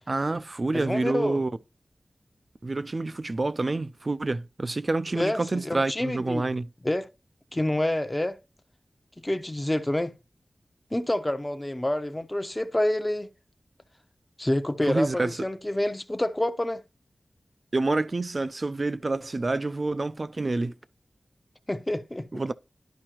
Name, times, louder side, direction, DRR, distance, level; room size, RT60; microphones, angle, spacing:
voice 1, 0.1-1.5 2.6-6.7 14.8-15.3 17.7-20.7 22.3-22.5, right 2 dB, 45° right, 0.5 m, -28 dB
voice 2, 0.7-1.4 5.1-6.4 6.8-7.1 7.5-8.4 9.2-10.2 10.9-13.3 14.4-16.8 21.7-22.3, left 1 dB, 20° left, 0.8 m, -28 dB
11.5 x 4.9 x 2.9 m
wide cardioid pair, 55°, 0 cm